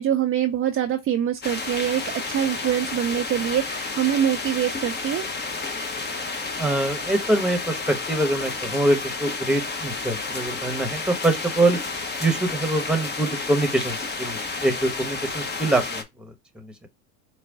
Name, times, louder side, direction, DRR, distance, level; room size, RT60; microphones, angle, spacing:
voice 1, 0.0-5.2, right 10 dB, 30° right, 0.6 m, -24 dB
sound 1, 1.4-16.0, left 3 dB, 20° left, 0.9 m, -31 dB
voice 2, 6.6-11.8 12.2-16.9, right 2 dB, ahead, 1.1 m, -24 dB
5.0 x 2.3 x 3.5 m
hypercardioid pair, 80°, 46 cm